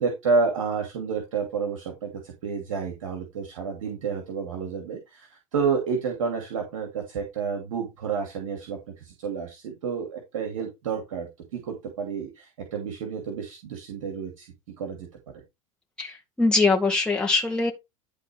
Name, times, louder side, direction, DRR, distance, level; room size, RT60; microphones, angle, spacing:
voice 1, 0.0-14.5 14.8-15.1, right 5 dB, 70° right, 2.7 m, -30 dB
voice 2, 16.0-17.7, left 3 dB, 5° left, 1.9 m, -22 dB
12.0 x 4.0 x 4.7 m
figure-of-eight pair, 80°, 17 cm